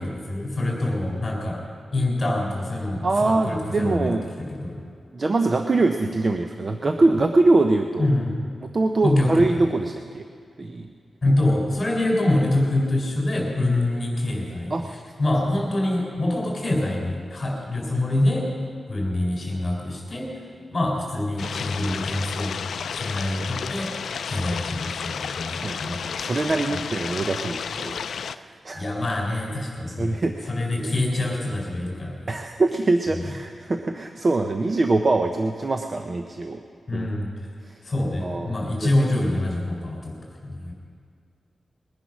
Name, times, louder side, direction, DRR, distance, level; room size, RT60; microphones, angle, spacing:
voice 1, 0.0-1.6 1.9-4.1 4.5-4.8 8.0-8.4 9.0-9.5 11.2-14.7 15.2-18.5 18.9-20.3 20.7-22.6 22.9-23.9 24.3-26.0 26.7-26.8 28.7-30.2 30.5-32.3 36.9-37.3 37.8-40.2 40.4-40.7, left 1 dB, 25° left, -1 dB, 4.1 m, -25 dB
voice 2, 3.0-4.3 5.1-8.1 8.6-10.2 10.6-10.9 14.7-14.9 25.4-28.0 28.3-28.8 30.0-30.5 30.8-30.9 32.3-36.6 36.9-37.1 37.6-37.8 38.2-38.5 38.8-39.1, right 2 dB, 30° right, 5 dB, 0.6 m, -23 dB
sound 1, 21.4-28.4, left 6 dB, 85° left, 0.4 m, -32 dB
21.0 x 10.0 x 6.1 m, 2.3 s
wide cardioid pair, 175°, 0 cm